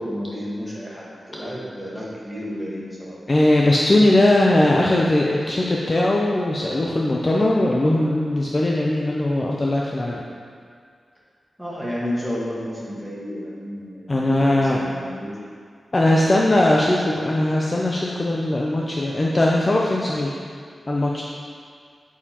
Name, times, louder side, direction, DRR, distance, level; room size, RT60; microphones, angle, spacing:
voice 1, 0.0-3.2 11.6-15.3, equal, ahead, -6 dB, 1.4 m, -31 dB
voice 2, 3.3-10.2 14.1-14.9 15.9-20.4 20.9-21.2, left 1 dB, 25° left, -3 dB, 0.5 m, -19 dB
8.5 x 7.1 x 2.9 m, 2.1 s
wide cardioid pair, 175°, 0 cm